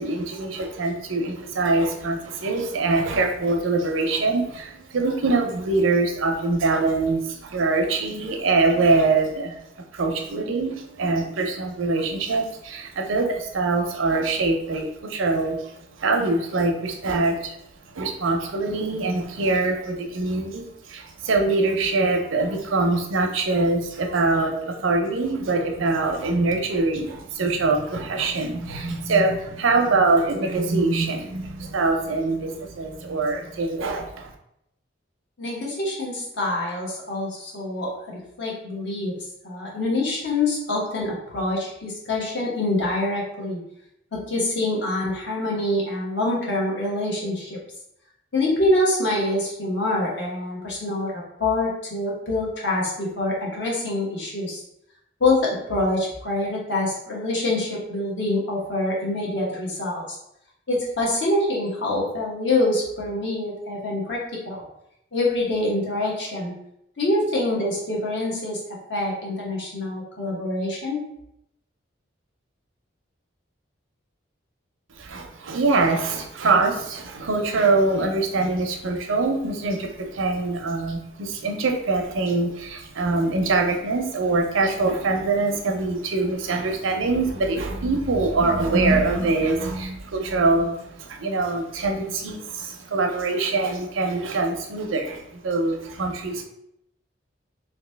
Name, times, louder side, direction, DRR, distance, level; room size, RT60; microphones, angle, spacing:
voice 1, 0.0-9.5 9.9-17.6 17.8-34.3 75.0-96.4, right 3 dB, 85° right, 3 dB, 0.6 m, -23 dB
voice 2, 35.4-39.2 39.4-43.6 44.1-47.6 48.3-54.6 55.2-60.2 60.7-64.6 65.1-66.5 67.0-68.6 68.9-71.0, left 2 dB, 65° left, -4 dB, 1.0 m, -25 dB
2.9 x 2.6 x 3.3 m, 0.79 s
head